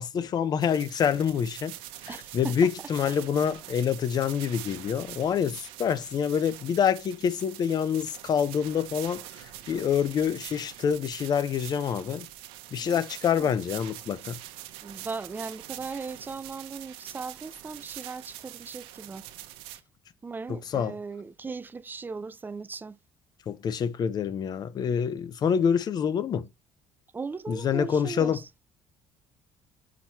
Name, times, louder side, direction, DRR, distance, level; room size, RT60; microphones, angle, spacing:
voice 1, 0.0-1.7 2.0-12.3 12.7-14.4 20.5-20.9 23.5-26.5 27.5-28.4, left 7 dB, 45° left, 0.9 m, -27 dB
sound 1, 0.6-19.8, right 14 dB, 80° right, 0.9 m, -44 dB
voice 2, 2.1-2.6 3.1-3.2 12.8-13.0 13.4-13.5 14.8-19.3 20.2-23.0 27.1-28.5, right 4 dB, 20° right, 0.5 m, -38 dB
6.3 x 4.5 x 4.3 m
supercardioid pair, 95°, 9 cm